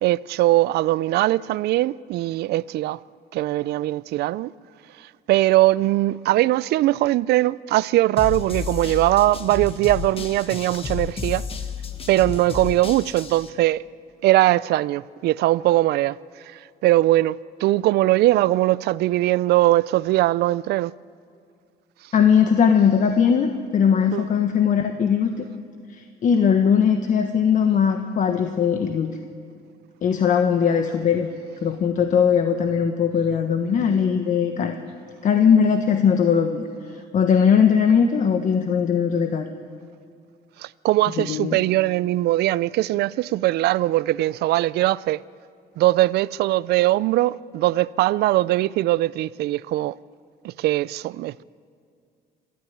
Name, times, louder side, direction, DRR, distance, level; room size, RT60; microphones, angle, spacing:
voice 1, 0.0-3.0 3.3-4.5 5.3-11.4 12.1-13.8 14.2-16.2 16.5-20.9 24.1-24.3 40.6-45.2 45.8-50.0 50.4-51.4, right 16 dB, 75° right, 0.5 m, -21 dB
sound 1, 8.2-13.5, left 5 dB, 35° left, 1.6 m, -32 dB
voice 2, 22.1-25.5 25.9-29.2 30.0-31.3 31.6-34.8 35.2-36.6 36.9-39.5 41.2-41.6, left 7 dB, 50° left, 1.3 m, -19 dB
29.0 x 13.0 x 9.3 m
cardioid pair, 110°, 17 cm